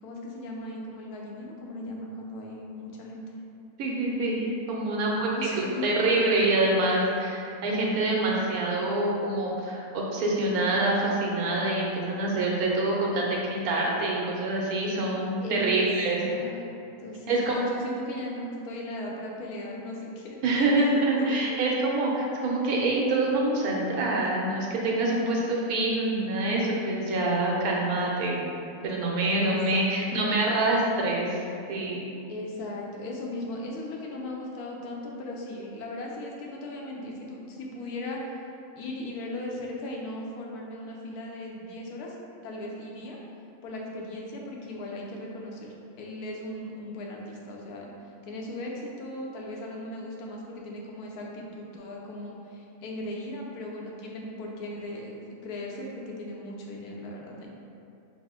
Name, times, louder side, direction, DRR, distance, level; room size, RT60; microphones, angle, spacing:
voice 1, 0.0-3.3 5.3-5.9 15.4-15.8 16.2-16.7 17.0-20.8 21.2-21.3 29.4-30.2 32.3-38.2 38.8-42.1 42.4-43.2 43.6-47.9 48.2-57.5, left 1 dB, 90° left, -1 dB, 1.2 m, -37 dB
voice 2, 3.8-16.2 17.3-17.7 20.4-28.5 28.8-31.4 31.7-32.1, right 2 dB, 75° right, -2 dB, 1.1 m, -26 dB
5.0 x 2.1 x 3.6 m, 2.6 s
omnidirectional pair, 1.6 m